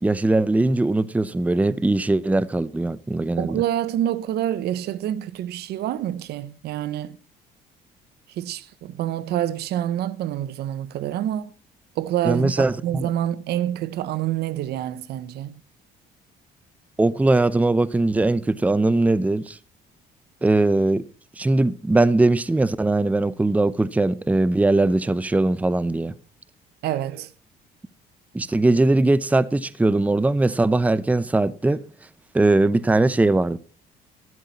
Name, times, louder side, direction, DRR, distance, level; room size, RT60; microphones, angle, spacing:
voice 1, 0.0-3.6 12.2-13.1 17.0-19.6 20.4-21.0 21.4-26.2 28.3-31.8 32.3-33.6, right 2 dB, 10° right, 0.7 m, -20 dB
voice 2, 3.4-7.2 8.4-11.5 12.0-15.6 26.8-27.3, right 12 dB, 70° right, 0.9 m, -27 dB
13.0 x 12.5 x 4.1 m
cardioid pair, 110°, 17 cm